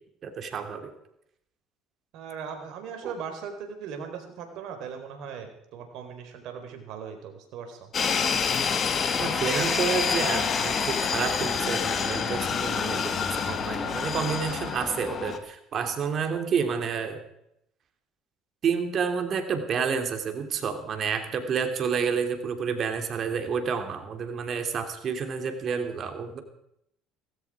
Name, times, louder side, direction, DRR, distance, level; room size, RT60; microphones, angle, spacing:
voice 1, 0.2-0.9 3.0-3.1 9.2-17.2 18.6-26.4, right 6 dB, 50° right, 7 dB, 3.0 m, -29 dB
voice 2, 2.1-7.9 13.8-14.0, right 6 dB, 70° right, 6 dB, 4.1 m, -39 dB
sound 1, 7.9-15.4, left 6 dB, 45° left, 2.3 m, -27 dB
18.0 x 16.0 x 4.9 m, 0.76 s
supercardioid pair, 75°, 0 cm